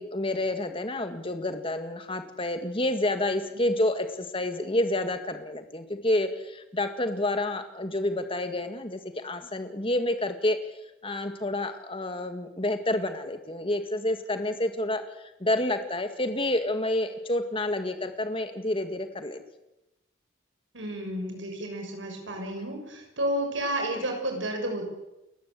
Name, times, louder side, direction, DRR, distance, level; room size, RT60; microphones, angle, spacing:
voice 1, 0.0-10.6 11.0-19.4, left 1 dB, 25° left, 7 dB, 2.0 m, -29 dB
voice 2, 20.7-24.9, right 1 dB, 75° right, 3 dB, 6.6 m, -31 dB
29.5 x 14.0 x 8.3 m, 0.92 s
head